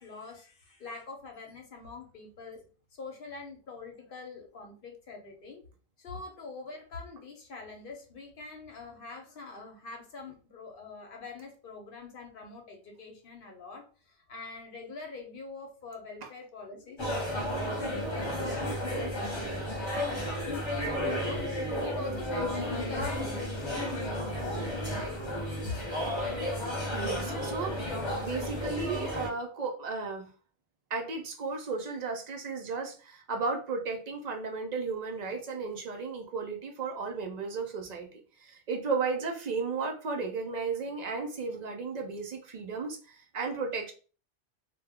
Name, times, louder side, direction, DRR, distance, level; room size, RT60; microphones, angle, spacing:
voice 1, 0.0-2.6 3.0-5.6 6.0-17.0 17.6-18.9 20.5-21.5 21.8-24.6 25.6-25.7, left 4 dB, 55° left, 3 dB, 0.8 m, -44 dB
sound 1, 17.0-29.3, equal, 25° left, 0.8 m, -33 dB
voice 2, 25.9-26.2 26.9-27.8 28.2-30.3 30.9-43.9, right 4 dB, 55° right, 3 dB, 0.4 m, -34 dB
2.1 x 2.1 x 3.4 m, 0.37 s
omnidirectional pair, 1.2 m